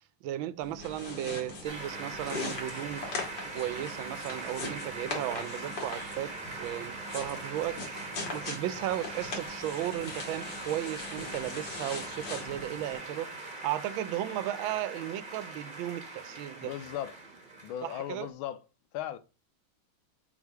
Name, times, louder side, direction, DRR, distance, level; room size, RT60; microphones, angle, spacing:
voice 1, 0.2-3.0 3.5-6.3 6.6-8.0 8.3-13.3 13.6-16.7 17.8-18.3, right 13 dB, 80° right, 1.4 m, -35 dB
sound 1, 0.6-13.0, left 3 dB, 60° left, 2.2 m, -41 dB
sound 2, 1.6-18.3, right 2 dB, 30° right, 1.1 m, -42 dB
voice 2, 16.6-17.2 17.6-18.6 18.9-19.2, left 11 dB, 85° left, 1.4 m, -37 dB
7.3 x 3.5 x 4.6 m
omnidirectional pair, 2.2 m